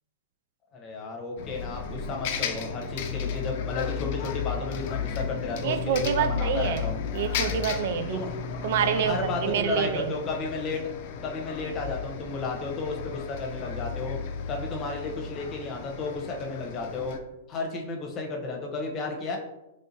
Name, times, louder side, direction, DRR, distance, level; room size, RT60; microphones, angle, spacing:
voice 1, 0.7-7.0 8.1-8.4 9.0-10.8 11.2-14.2 14.5-17.2 17.5-19.4, left 3 dB, 30° left, 1 dB, 0.9 m, -33 dB
Bus, 1.4-17.2, left 7 dB, 55° left, 0.5 m, -34 dB
voice 2, 5.6-6.9 7.1-8.2 8.6-10.2, right 8 dB, 60° right, 10 dB, 0.3 m, -27 dB
3.8 x 3.3 x 2.8 m, 0.94 s
hypercardioid pair, 110°, 0 cm